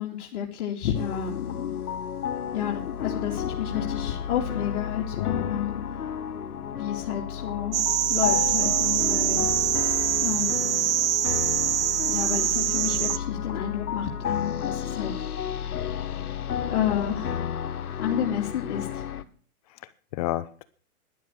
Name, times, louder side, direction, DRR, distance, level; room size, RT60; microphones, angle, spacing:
voice 1, 0.0-1.7 2.5-5.8 6.7-7.8 8.1-9.5 10.2-10.8 12.1-15.2 16.7-17.6 18.0-19.0, left 9 dB, 50° left, 0 dB, 2.9 m, -31 dB
sound 1, 0.9-19.2, left 8 dB, 80° left, 1.8 m, -32 dB
voice 2, 5.2-5.5 19.7-20.6, left 15 dB, 25° left, 15 dB, 0.7 m, -31 dB
sound 2, 7.7-13.2, right 11 dB, 65° right, 1.2 m, -24 dB
13.0 x 11.0 x 8.0 m, 0.42 s
hypercardioid pair, 145°, 44 cm